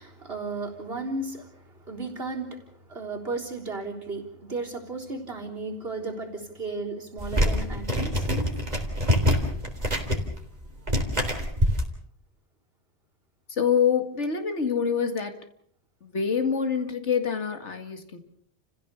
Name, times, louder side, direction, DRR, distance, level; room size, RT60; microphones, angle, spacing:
voice 1, 0.0-1.5 1.9-2.6 2.9-8.3, right 3 dB, 55° right, 0 dB, 4.2 m, -34 dB
sound 1, 7.2-11.8, equal, 35° right, 3.7 m, -25 dB
voice 2, 13.5-15.4 16.0-18.2, left 7 dB, 80° left, 7 dB, 2.4 m, -26 dB
29.5 x 16.0 x 7.0 m, 0.64 s
omnidirectional pair, 1.2 m